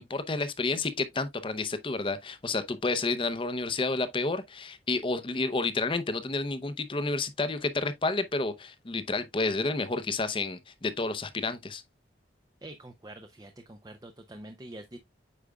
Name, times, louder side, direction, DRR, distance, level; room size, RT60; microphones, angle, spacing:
voice 1, 0.0-11.8, left 3 dB, 30° left, 0.6 m, -30 dB
voice 2, 12.6-15.0, right 1 dB, 20° right, 0.5 m, -46 dB
8.4 x 5.0 x 2.2 m
head